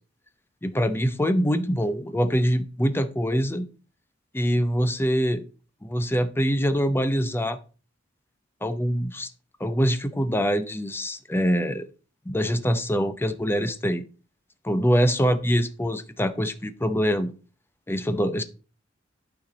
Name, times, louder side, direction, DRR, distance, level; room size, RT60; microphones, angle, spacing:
voice 1, 0.6-3.7 4.3-5.4 5.8-7.6 8.6-9.3 9.6-11.9 12.3-14.0 14.6-17.3 17.9-18.4, equal, 10° left, 0.6 m, -24 dB
12.0 x 4.5 x 4.1 m
head